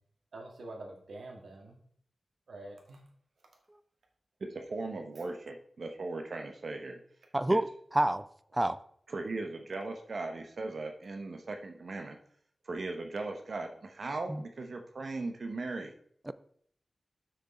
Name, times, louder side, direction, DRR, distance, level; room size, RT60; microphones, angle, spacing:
voice 1, 0.3-1.8 2.5-3.0, right 2 dB, 85° right, 1 dB, 1.7 m, -46 dB
voice 2, 4.4-7.0 9.1-12.2 12.6-15.9, right 3 dB, 60° right, 4 dB, 0.9 m, -38 dB
voice 3, 7.3-8.3 8.5-8.8 14.3-14.4 16.3-16.4, right 1 dB, 15° right, 15 dB, 0.4 m, -28 dB
6.6 x 6.2 x 4.3 m, 0.63 s
wide cardioid pair, 95°, 0 cm